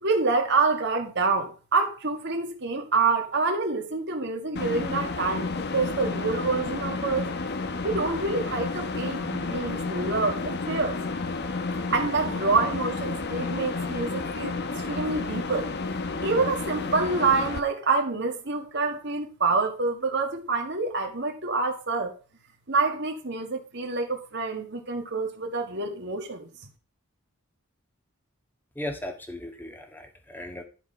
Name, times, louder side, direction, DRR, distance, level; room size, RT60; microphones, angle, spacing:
voice 1, 0.0-5.5 5.7-7.3 7.8-11.0 11.9-14.6 14.9-15.7 16.2-22.1 22.7-26.5, right 4 dB, 55° right, 1.9 m, -27 dB
sound 1, 4.5-17.6, left 3 dB, 50° left, 1.0 m, -31 dB
voice 2, 28.7-30.6, left 1 dB, 10° left, 1.7 m, -37 dB
11.5 x 4.8 x 5.6 m
head